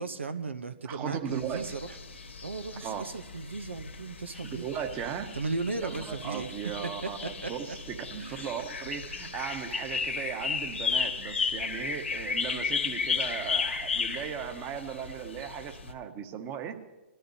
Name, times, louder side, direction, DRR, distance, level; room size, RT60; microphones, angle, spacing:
voice 1, 0.0-4.6 5.3-6.5 7.0-7.8 8.2-8.5, right 3 dB, 85° right, 10 dB, 0.9 m, -36 dB
voice 2, 0.8-1.7 2.8-3.1 4.4-5.3 5.8-16.8, right 8 dB, 30° right, 6 dB, 1.5 m, -37 dB
Birds in Kalopa State Park, 1.3-15.9, left 5 dB, 85° left, 1.7 m, -34 dB
22.0 x 14.0 x 2.8 m, 1.0 s
figure-of-eight pair, 120°, 6 cm